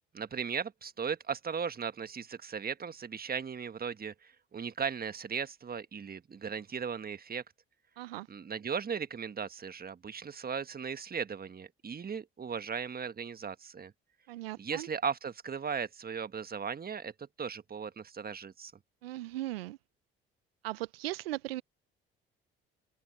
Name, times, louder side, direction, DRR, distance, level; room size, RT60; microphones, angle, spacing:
voice 1, 0.1-7.4 8.3-13.9 14.6-18.7, right 6 dB, 30° right, 1.4 m, -37 dB
voice 2, 8.0-8.3 14.3-14.9 19.0-19.8 20.6-21.6, right 16 dB, 85° right, 0.5 m, -38 dB
open air
hypercardioid pair, 55°, 29 cm